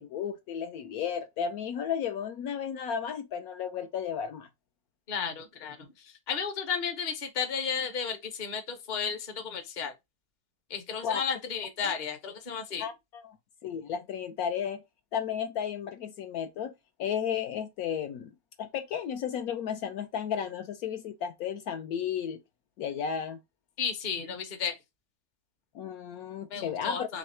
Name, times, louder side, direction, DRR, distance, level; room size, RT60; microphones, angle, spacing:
voice 1, 0.0-4.5 11.0-11.2 11.8-11.9 12.8-13.4 13.6-14.8 15.1-16.7 17.0-18.3 18.6-22.4 22.8-23.4 25.7-27.2, left 8 dB, 70° left, 1.0 m, -33 dB
voice 2, 5.1-5.8 6.0-9.9 10.7-12.9 23.8-24.8 26.5-27.2, left 6 dB, 40° left, 0.8 m, -33 dB
3.4 x 3.2 x 4.2 m
omnidirectional pair, 1.7 m